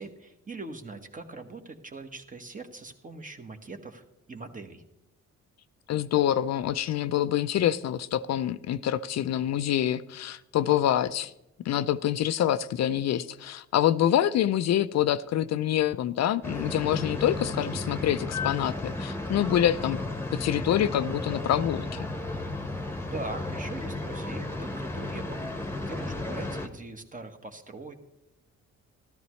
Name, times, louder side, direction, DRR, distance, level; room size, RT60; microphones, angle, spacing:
voice 1, 0.0-4.8 23.1-27.9, right 3 dB, 25° right, 6 dB, 1.4 m, -41 dB
voice 2, 5.9-11.3 11.6-20.0 20.3-22.1, left 11 dB, 60° left, 13 dB, 0.5 m, -26 dB
sound 1, 16.4-26.7, left 2 dB, 10° left, 1.2 m, -33 dB
13.5 x 12.5 x 3.2 m, 0.88 s
cardioid pair, 90°, 30 cm